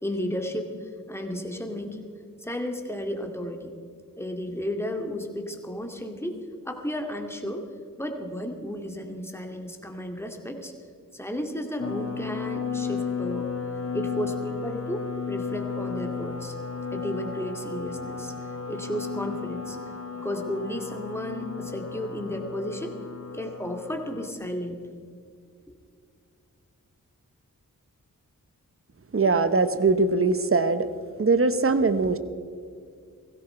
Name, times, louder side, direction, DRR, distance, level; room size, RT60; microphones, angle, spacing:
voice 1, 0.0-2.0 2.4-3.7 4.2-6.4 6.7-7.7 8.0-10.7 11.1-13.5 13.9-16.6 16.9-18.3 18.7-19.8 20.2-23.0 23.3-24.8 25.7-25.8, equal, 5° left, 3 dB, 2.2 m, -33 dB
sound 1, 11.8-24.3, left 6 dB, 45° left, 1.2 m, -34 dB
voice 2, 29.1-30.9 31.2-32.2, right 3 dB, 40° right, 11 dB, 1.0 m, -21 dB
17.5 x 15.5 x 4.4 m, 2.3 s
cardioid pair, 60°, 34 cm